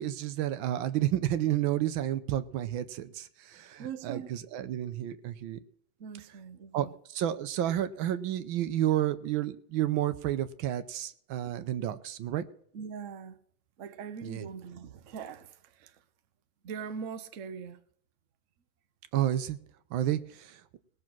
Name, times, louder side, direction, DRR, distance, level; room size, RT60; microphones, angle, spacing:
voice 1, 0.0-5.6 6.7-12.4 14.2-14.5 19.1-19.6 19.9-20.6, right 12 dB, 80° right, 1.5 m, -31 dB
voice 2, 3.8-4.4 6.0-6.9 11.5-11.6 12.7-13.4 13.8-16.0 16.6-17.8, right 6 dB, 55° right, 0.9 m, -41 dB
19.0 x 6.3 x 6.0 m
omnidirectional pair, 2.2 m